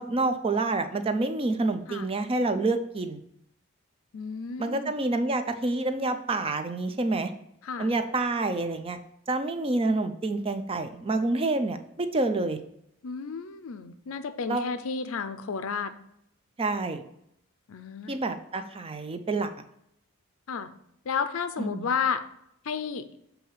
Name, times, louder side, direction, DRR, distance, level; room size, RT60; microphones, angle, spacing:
voice 1, 0.0-3.2 4.6-7.3 7.8-9.0 9.3-12.6 14.5-14.7 16.6-17.0 18.1-19.5 21.6-21.9, right 2 dB, 25° right, 8 dB, 0.4 m, -28 dB
voice 2, 4.1-4.9 7.6-7.9 13.0-15.9 17.7-18.1 20.5-20.7 21.0-22.2 22.6-23.1, left 6 dB, 65° left, 10 dB, 0.5 m, -32 dB
7.1 x 2.8 x 5.5 m, 0.77 s
head